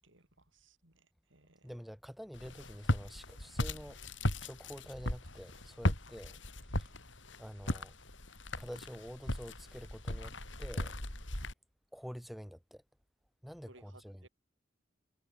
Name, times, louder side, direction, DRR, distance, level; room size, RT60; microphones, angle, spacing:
voice 1, 0.5-1.0 1.3-1.7 13.7-14.3, right 2 dB, 80° right, 6.9 m, -61 dB
voice 2, 1.6-4.0 4.4-6.4 6.8-6.9 7.4-7.9 8.6-11.0 11.9-12.8 13.4-14.3, equal, ahead, 5.6 m, -48 dB
Walk footsteps, 2.3-11.5, left 1 dB, 80° left, 6.3 m, -37 dB
head